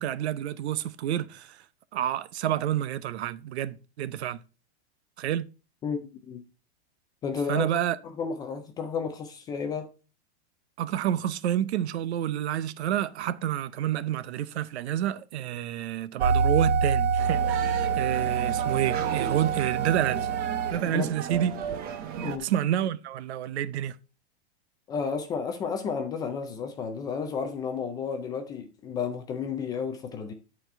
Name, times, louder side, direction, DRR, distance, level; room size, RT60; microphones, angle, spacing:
voice 1, 0.0-1.6 1.9-4.4 5.2-5.5 7.5-8.0 10.8-20.3 20.7-21.5 22.4-24.0, right 11 dB, 70° right, 0.7 m, -29 dB
voice 2, 5.8-6.4 7.2-7.7 8.2-9.9 20.9-21.1 22.2-22.5 24.9-30.3, left 6 dB, 10° left, 0.4 m, -32 dB
sound 1, 16.2-20.7, right 6 dB, 45° right, 2.3 m, -26 dB
sound 2, 17.2-22.4, right 8 dB, 25° right, 0.8 m, -35 dB
10.5 x 4.3 x 4.4 m
supercardioid pair, 155°, 34 cm